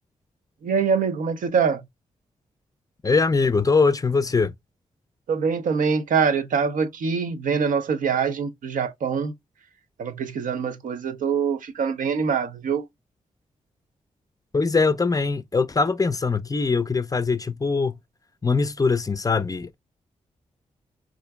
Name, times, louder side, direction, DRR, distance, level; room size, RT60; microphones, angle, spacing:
voice 1, 0.6-1.8 5.3-9.3 10.0-12.9, right 6 dB, 75° right, 0.5 m, -24 dB
voice 2, 3.0-4.5 14.5-18.0 18.4-19.8, left 4 dB, 25° left, 0.4 m, -22 dB
4.3 x 2.5 x 2.2 m
supercardioid pair, 45°, 14 cm